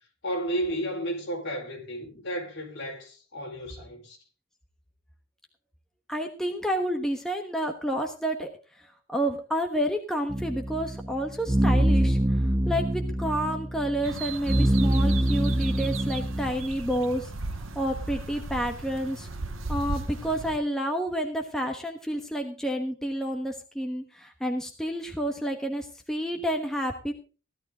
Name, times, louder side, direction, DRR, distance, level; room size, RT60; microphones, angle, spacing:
voice 1, 0.2-4.2, right 1 dB, 55° left, 4.7 m, -33 dB
voice 2, 6.1-19.3 19.7-27.1, equal, ahead, 1.2 m, -30 dB
sound 1, 10.3-16.5, right 1 dB, 15° right, 0.5 m, -25 dB
sound 2, 14.0-20.6, right 3 dB, 65° right, 1.2 m, -36 dB
16.0 x 12.0 x 3.7 m
head